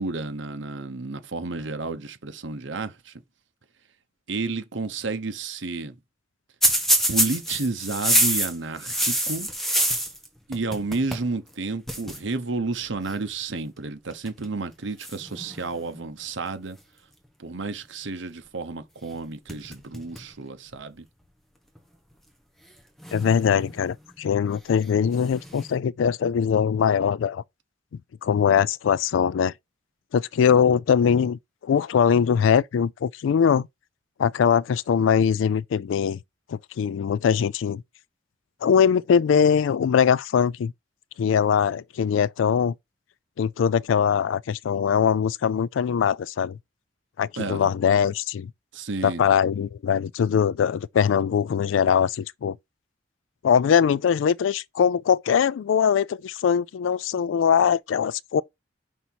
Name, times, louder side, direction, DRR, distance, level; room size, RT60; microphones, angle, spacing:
voice 1, 0.0-3.1 4.3-6.0 7.1-9.5 10.5-16.8 17.4-21.1 47.4-47.7 48.7-49.2, right 3 dB, 75° right, 0.9 m, -31 dB
sound 1, 6.6-10.3 10.5-11.3 11.5-11.6 11.9-12.2 13.1-13.3 14.1-14.5 15.0-16.1 19.0-19.2 19.5-20.3 20.7-20.8 21.8-21.9 23.0-23.9 25.1-25.7, equal, ahead, 1.3 m, -26 dB
voice 2, 23.1-27.4 28.2-29.5 30.1-33.7 34.2-36.2 36.5-37.8 38.6-40.7 41.2-42.7 43.4-46.6 47.2-48.5 49.0-52.6 53.4-58.4, left 7 dB, 85° left, 0.3 m, -22 dB
5.6 x 4.0 x 4.5 m
head